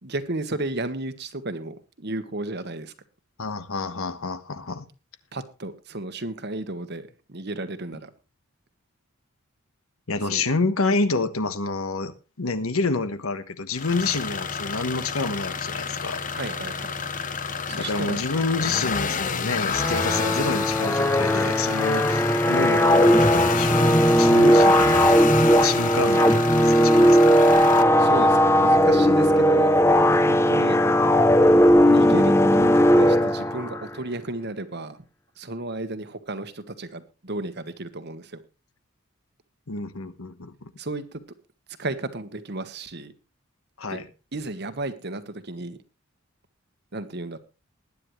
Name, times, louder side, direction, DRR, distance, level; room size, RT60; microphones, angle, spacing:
voice 1, 0.0-2.9 5.3-8.1 10.3-10.4 16.3-16.9 17.7-18.2 28.0-29.7 30.2-30.8 31.9-35.0 35.4-38.4 40.8-41.1 41.8-43.1 43.9-44.0 44.3-45.8 46.9-47.4, right 2 dB, 50° right, 1.3 m, -33 dB
voice 2, 3.4-4.9 10.1-12.1 12.4-16.2 17.7-27.2 39.7-40.7 43.8-44.1, left 3 dB, 80° left, 1.2 m, -28 dB
Diesel engine idle and gas, 13.7-27.8, left 5 dB, 35° left, 1.0 m, -29 dB
sound 1, 19.7-33.8, equal, 10° left, 0.7 m, -18 dB
20.0 x 9.9 x 3.2 m
head